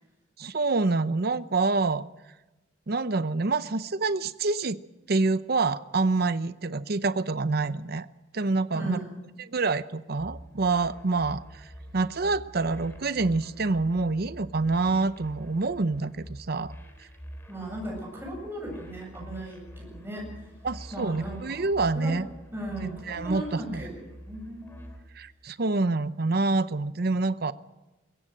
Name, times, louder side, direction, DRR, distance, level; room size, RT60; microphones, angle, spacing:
voice 1, 0.4-2.0 2.9-4.8 5.1-8.1 8.3-9.0 9.4-11.4 11.9-16.7 20.6-22.3 23.1-23.9 25.2-27.5, right 3 dB, 55° right, 14 dB, 0.7 m, -26 dB
voice 2, 8.7-9.1 17.5-20.2 20.9-21.7 21.9-22.2 22.5-24.7, right 1 dB, 15° right, -1 dB, 7.6 m, -37 dB
sound 1, 10.2-25.0, equal, 15° left, 3.3 m, -46 dB
21.5 x 16.5 x 7.8 m, 1.0 s
head